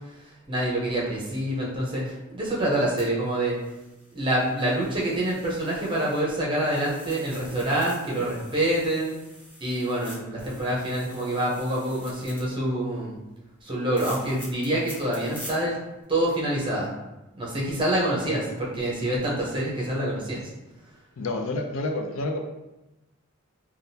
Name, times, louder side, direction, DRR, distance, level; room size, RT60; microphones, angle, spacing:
voice 1, 0.5-3.5 4.1-9.1 9.6-13.1 13.6-15.8 16.1-16.9 17.4-20.5, right 1 dB, 25° right, -4 dB, 0.7 m, -26 dB
sound 1, 3.0-6.3 6.6-12.4 13.9-15.5 16.0-16.1, equal, 5° left, 0.8 m, -46 dB
voice 2, 21.2-22.4, left 2 dB, 80° left, 4 dB, 0.4 m, -29 dB
3.5 x 2.3 x 2.7 m, 0.99 s
head